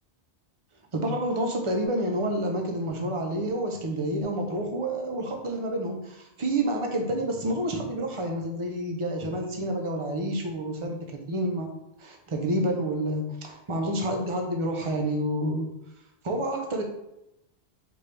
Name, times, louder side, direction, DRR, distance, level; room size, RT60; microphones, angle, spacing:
voice 1, 0.9-11.0 11.3-11.7 12.0-15.7 16.2-16.8, right 1 dB, 35° right, 2 dB, 0.7 m, -29 dB
4.3 x 3.3 x 3.3 m, 0.84 s
omnidirectional pair, 1.1 m